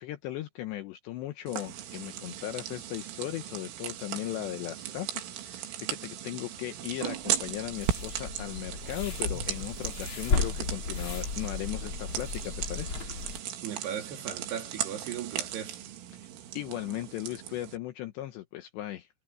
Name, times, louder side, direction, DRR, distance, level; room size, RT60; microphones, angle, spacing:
voice 1, 0.0-12.9 16.5-19.1, left 14 dB, 75° left, 2.7 m, -37 dB
sound 1, 1.5-17.8, right 10 dB, 75° right, 4.6 m, -37 dB
sound 2, 7.2-13.4, left 4 dB, 45° left, 1.6 m, -34 dB
voice 2, 13.6-15.8, right 9 dB, 60° right, 4.0 m, -37 dB
omnidirectional pair, 5.9 m